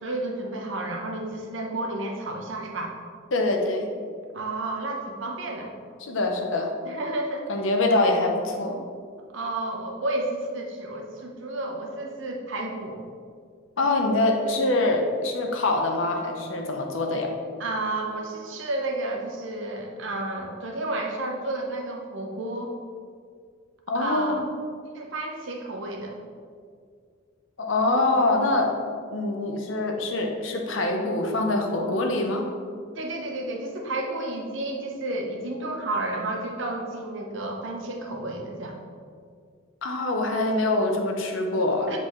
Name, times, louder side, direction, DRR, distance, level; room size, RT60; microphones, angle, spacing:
voice 1, 0.0-2.9 4.3-5.7 6.8-7.5 9.3-13.0 17.6-22.7 23.9-24.5 24.9-26.2 32.9-38.8 41.9-42.0, right 2 dB, 65° right, 1 dB, 0.8 m, -31 dB
voice 2, 3.3-3.9 6.0-6.7 7.5-8.8 13.8-17.3 23.9-24.4 27.6-28.7 29.1-32.5 39.8-41.9, left 2 dB, 65° left, 2 dB, 0.7 m, -24 dB
7.5 x 4.1 x 3.1 m, 2.1 s
head